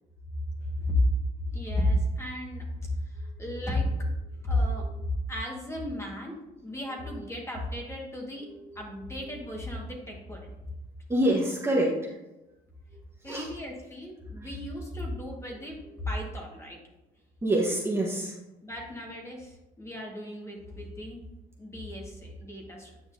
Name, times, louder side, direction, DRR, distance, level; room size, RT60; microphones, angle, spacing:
voice 1, 0.6-1.0 1.5-3.9 4.4-4.8 5.3-6.3 6.6-8.5 8.8-10.5 13.2-16.8 18.6-21.2 21.6-23.1, left 1 dB, 15° left, -1 dB, 1.7 m, -33 dB
voice 2, 3.2-3.8 4.5-5.0 6.9-7.2 8.4-9.5 11.1-12.1 13.2-13.5 14.3-14.6 15.5-16.0 17.4-18.4, right 1 dB, 15° right, -3 dB, 1.3 m, -30 dB
9.0 x 5.7 x 2.7 m, 0.97 s
cardioid pair, 110°, 17 cm